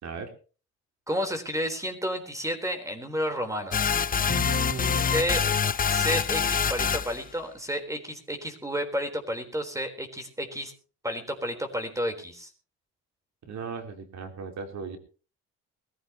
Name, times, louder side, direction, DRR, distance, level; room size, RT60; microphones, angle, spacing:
voice 1, 1.1-3.9 5.1-5.5 5.9-10.7 11.0-12.5, equal, 10° right, 6 dB, 3.9 m, -31 dB
sound 1, 3.7-7.2, left 7 dB, 30° left, 0.6 m, -25 dB
voice 2, 4.3-5.1 13.4-15.0, right 5 dB, 65° right, 4 dB, 3.5 m, -36 dB
21.5 x 15.0 x 3.0 m, 0.36 s
cardioid pair, 90°, 30 cm